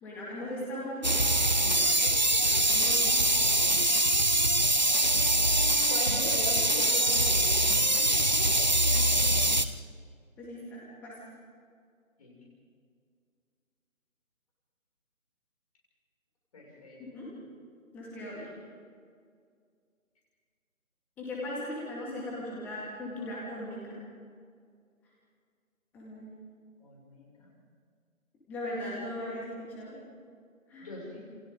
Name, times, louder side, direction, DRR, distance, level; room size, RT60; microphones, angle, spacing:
voice 1, 0.0-1.1 2.4-3.2 10.4-11.2 17.0-17.3 17.9-18.5 21.2-24.0 25.9-26.3 28.5-29.5 29.8-30.0 30.7-30.9, left 1 dB, 5° left, -5 dB, 2.1 m, -38 dB
Drive Clip, 1.0-9.7, right 1 dB, 35° right, 0.6 m, -24 dB
voice 2, 2.1-2.4 5.9-8.3 12.2-12.4 16.5-17.0 26.8-27.5 30.8-31.2, left 1 dB, 25° left, -3 dB, 6.9 m, -41 dB
28.0 x 23.5 x 4.0 m, 2.2 s
figure-of-eight pair, 160°, 41 cm